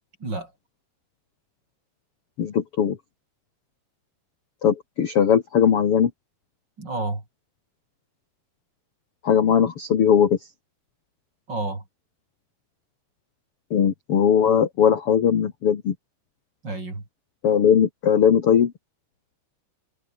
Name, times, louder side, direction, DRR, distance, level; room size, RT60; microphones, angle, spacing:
voice 1, 0.2-0.5 6.8-7.2 11.5-11.8 16.6-17.1, right 2 dB, 25° right, 6.1 m, -30 dB
voice 2, 2.4-3.0 4.6-6.1 9.2-10.4 13.7-15.9 17.4-18.7, left 8 dB, 50° left, 2.0 m, -19 dB
omnidirectional pair, 4.8 m